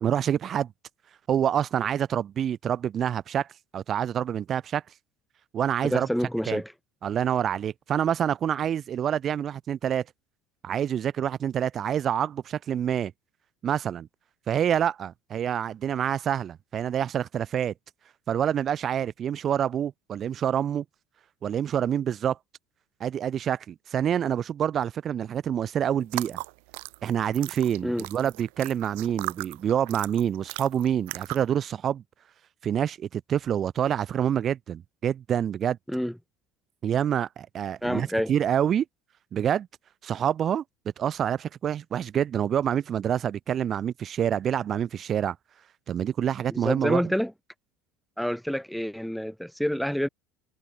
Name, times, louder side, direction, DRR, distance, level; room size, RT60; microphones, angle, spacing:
voice 1, 0.0-0.7 1.3-3.5 3.7-4.8 5.5-6.1 6.5-6.6 7.0-10.0 10.6-13.1 13.6-14.1 14.5-17.7 18.3-20.8 21.4-22.4 23.0-26.4 27.0-32.0 32.6-35.8 36.8-38.8 39.3-39.7 40.0-40.6 41.0-45.3 45.9-47.0, right 9 dB, 45° right, 1.5 m, -27 dB
voice 2, 5.8-6.7 27.8-28.1 35.9-36.1 37.8-38.3 46.5-47.3 48.2-50.1, equal, ahead, 2.5 m, -28 dB
sound 1, 26.0-31.6, right 30 dB, 75° right, 4.6 m, -38 dB
hypercardioid pair, 85°, 0 cm